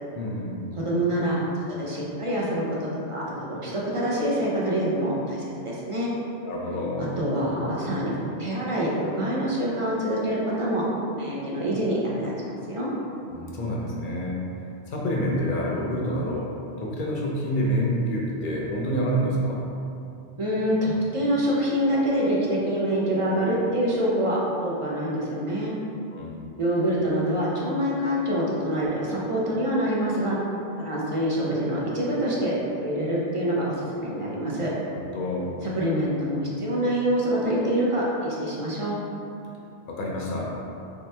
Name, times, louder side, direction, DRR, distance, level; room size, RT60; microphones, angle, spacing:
voice 1, 0.1-0.6 6.4-7.2 13.3-14.4 14.9-16.5 16.8-19.6 26.1-26.5 34.8-35.5 39.9-40.5, equal, 60° left, -3 dB, 0.6 m, -28 dB
voice 2, 0.7-1.4 1.7-6.1 7.0-10.8 11.1-12.9 20.4-25.7 26.6-30.4 30.8-34.7 35.6-39.0, equal, 45° right, -6 dB, 0.4 m, -26 dB
3.3 x 2.9 x 3.2 m, 2.7 s
omnidirectional pair, 1.2 m